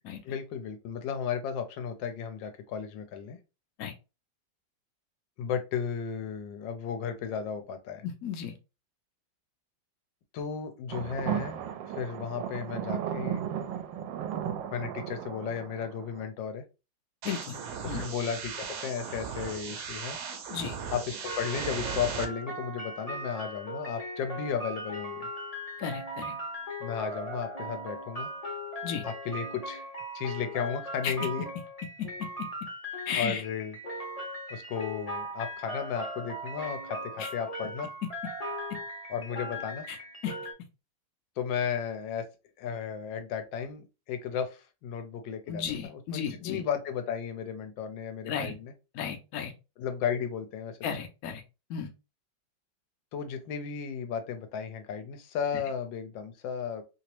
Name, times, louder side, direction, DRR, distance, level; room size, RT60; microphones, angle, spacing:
voice 1, 0.2-3.4 5.4-8.0 10.3-11.6 11.9-13.4 14.7-16.6 17.8-20.2 20.9-25.3 26.8-28.3 29.0-29.9 30.1-31.5 33.2-33.8 34.5-37.9 39.1-39.9 41.4-42.3 42.6-48.7 49.8-50.8 53.1-56.8, left 7 dB, 85° left, 7 dB, 1.4 m, -34 dB
voice 2, 8.0-8.5 17.2-17.6 17.9-18.1 20.5-20.8 25.8-26.4 28.8-29.0 31.0-31.1 32.0-32.1 33.1-33.4 37.2-37.3 39.9-40.0 40.2-40.3 45.5-46.6 48.3-48.6 48.9-49.5 50.8-51.4 51.7-51.9, left 8 dB, 65° left, 6 dB, 1.0 m, -34 dB
sound 1, 10.9-16.3, right 9 dB, 85° right, 1.3 m, -35 dB
sound 2, 17.2-22.3, right 6 dB, 65° right, 1.2 m, -37 dB
sound 3, 21.2-40.5, equal, 30° left, 0.7 m, -39 dB
3.2 x 2.9 x 2.9 m, 0.29 s
omnidirectional pair, 2.0 m